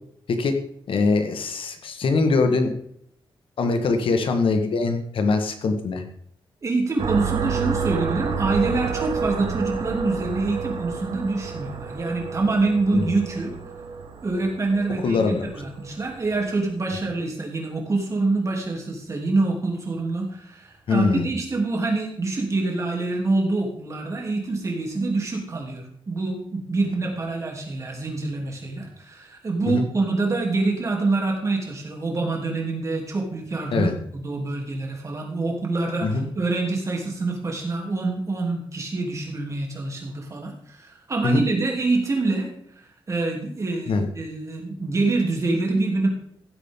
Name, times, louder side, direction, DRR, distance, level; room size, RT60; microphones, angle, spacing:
voice 1, 0.9-2.7 3.6-6.0 12.9-13.0 15.0-15.5 20.9-21.3 29.7-29.8 33.7-33.9 36.0-36.3 41.2-41.4 43.9-44.1, left 3 dB, 70° left, 6 dB, 1.6 m, -22 dB
voice 2, 6.6-13.5 14.2-42.5 43.1-46.1, right 3 dB, 35° right, 0 dB, 3.1 m, -26 dB
sound 1, 7.0-16.5, right 6 dB, 85° right, 1.6 m, -30 dB
15.5 x 8.4 x 3.8 m, 0.68 s
wide cardioid pair, 165°, 9 cm